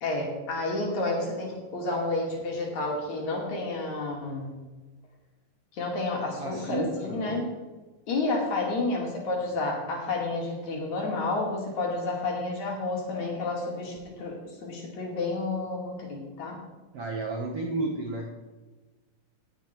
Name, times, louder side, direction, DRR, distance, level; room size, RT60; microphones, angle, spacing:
voice 1, 0.0-4.5 5.7-7.5 8.1-14.4 14.6-16.6, left 2 dB, 55° left, -1 dB, 3.6 m, -30 dB
voice 2, 6.4-7.4 16.9-18.3, right 2 dB, 60° right, -1 dB, 1.7 m, -32 dB
18.5 x 8.2 x 4.5 m, 1.2 s
omnidirectional pair, 4.2 m